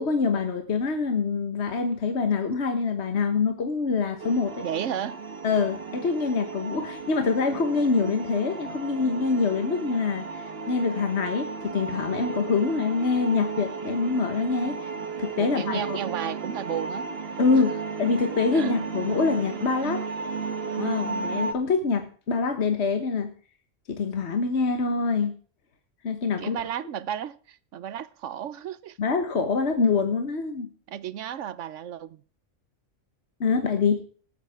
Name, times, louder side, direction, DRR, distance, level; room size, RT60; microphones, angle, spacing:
voice 1, 0.0-4.6 5.4-14.9 15.2-16.0 17.4-17.7 18.0-20.0 20.8-23.3 23.9-25.3 26.0-26.6 29.0-30.7 33.4-34.0, left 4 dB, 60° left, 1.5 m, -25 dB
sound 1, 4.2-21.5, right 5 dB, 50° right, 1.5 m, -34 dB
voice 2, 4.6-5.2 15.4-17.1 17.5-17.6 18.5-18.7 26.4-29.0 30.9-32.2, right 9 dB, 80° right, 1.1 m, -33 dB
18.5 x 9.1 x 3.6 m
omnidirectional pair, 1.3 m